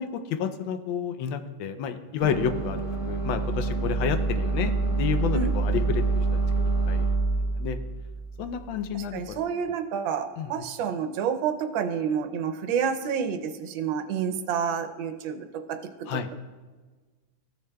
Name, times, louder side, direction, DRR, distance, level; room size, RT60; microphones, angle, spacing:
voice 1, 0.0-4.7 5.0-6.4 6.9-7.1 7.6-7.8 8.4-9.4 10.4-10.6 16.1-16.3, left 7 dB, 80° left, 8 dB, 1.3 m, -30 dB
sound 1, 2.2-9.3, right 3 dB, 35° left, 2.6 m, -27 dB
voice 2, 5.3-5.8 8.9-15.8, right 7 dB, 85° right, 6 dB, 1.4 m, -29 dB
14.0 x 6.7 x 2.2 m, 1.3 s
omnidirectional pair, 2.1 m